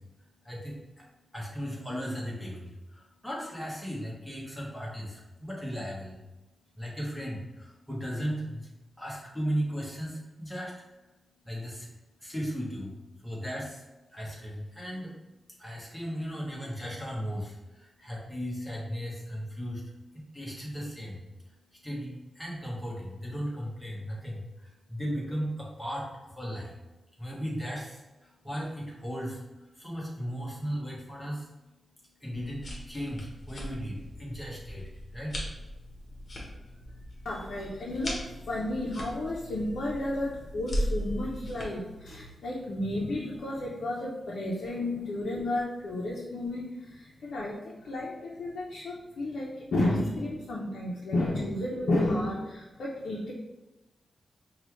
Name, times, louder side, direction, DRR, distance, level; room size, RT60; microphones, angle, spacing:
voice 1, 1.3-2.6 3.2-5.1 5.4-6.1 6.8-7.4 7.9-8.6 9.0-10.1 10.4-10.7 11.5-11.8 12.2-12.9 13.2-13.7 14.1-15.1 15.6-17.5 18.0-19.8 20.3-21.1 21.8-24.4 24.9-26.0 26.4-26.7 27.2-27.9 28.4-29.3 29.8-31.4 32.2-32.6 32.9-33.2 33.5-33.9 34.2-34.8 35.1-35.3, equal, 5° left, -5 dB, 1.2 m, -35 dB
sound 1, 32.3-41.6, equal, 40° left, 1.0 m, -38 dB
voice 2, 37.2-53.3, left 1 dB, 80° left, -5 dB, 0.7 m, -32 dB
5.4 x 2.4 x 3.1 m, 1.0 s
wide cardioid pair, 135°, 0 cm